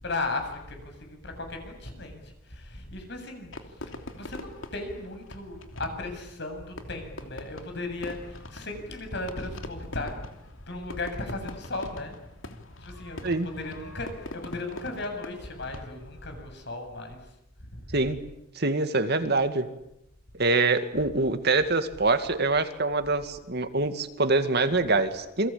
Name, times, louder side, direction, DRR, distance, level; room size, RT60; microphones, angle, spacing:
voice 1, 0.0-3.5 3.9-10.2 10.7-12.2 12.8-17.2 17.6-17.7 20.9-21.0, left 2 dB, 60° left, 5 dB, 7.7 m, -36 dB
Fireworks, 3.5-16.2, left 2 dB, 90° left, 2.9 m, -43 dB
voice 2, 18.6-19.7 20.4-25.5, right 3 dB, 55° right, 8 dB, 2.2 m, -25 dB
28.5 x 23.5 x 8.7 m, 0.84 s
head